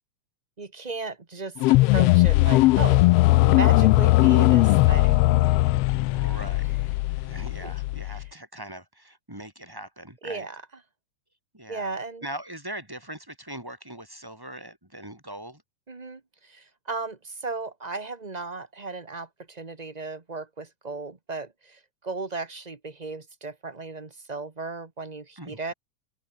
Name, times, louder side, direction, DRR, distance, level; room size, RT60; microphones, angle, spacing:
voice 1, 0.6-3.1 3.4-5.5 7.6-7.7 10.2-10.6 11.7-12.2 15.9-25.7, right 3 dB, 35° right, 0.6 m, -35 dB
sound 1, 1.6-8.2, left 19 dB, 90° left, 1.3 m, -19 dB
voice 2, 6.1-10.5 11.5-11.9 12.2-15.6 25.4-25.7, right 1 dB, 5° right, 4.2 m, -41 dB
open air
omnidirectional pair, 3.3 m